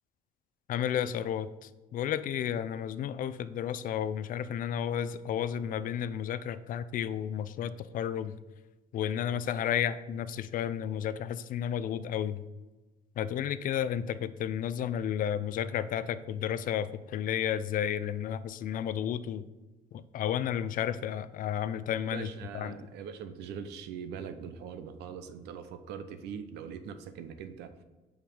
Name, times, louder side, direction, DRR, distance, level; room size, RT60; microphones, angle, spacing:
voice 1, 0.7-8.4 8.9-12.4 13.2-19.5 19.9-22.8, left 9 dB, 55° left, 15 dB, 0.4 m, -32 dB
voice 2, 22.1-27.7, right 7 dB, 80° right, 10 dB, 0.7 m, -42 dB
5.5 x 4.7 x 5.0 m, 1.2 s
cardioid pair, 110°, 17 cm